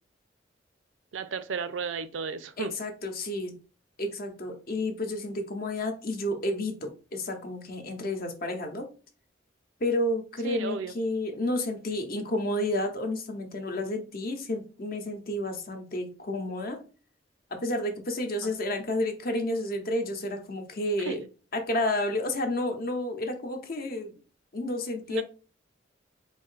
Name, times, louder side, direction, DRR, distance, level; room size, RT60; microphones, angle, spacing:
voice 1, 1.1-2.7 10.4-10.9 18.4-18.5 21.0-21.2 25.1-25.2, right 5 dB, 85° right, 13 dB, 0.5 m, -33 dB
voice 2, 2.6-3.5 4.0-8.9 9.8-16.8 17.5-21.2 21.5-24.1 24.5-25.2, left 1 dB, 55° left, 5 dB, 0.9 m, -31 dB
4.3 x 2.7 x 3.7 m, 0.35 s
head